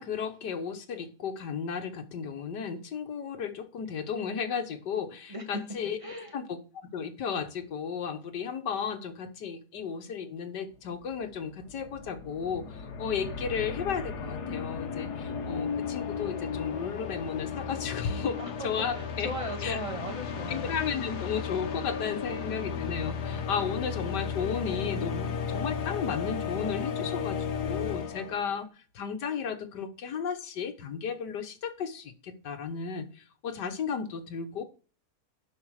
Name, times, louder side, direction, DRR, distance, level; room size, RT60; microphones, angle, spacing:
voice 1, 0.0-6.0 6.3-6.6 6.9-19.3 19.6-19.8 20.5-34.6, left 6 dB, 90° left, 1.9 m, -34 dB
voice 2, 5.8-6.4 18.4-20.8, equal, 20° right, 1.9 m, -38 dB
sound 1, 10.8-10.9 11.1-28.6, left 6 dB, 75° left, 1.7 m, -35 dB
11.0 x 6.3 x 4.8 m
omnidirectional pair, 1.8 m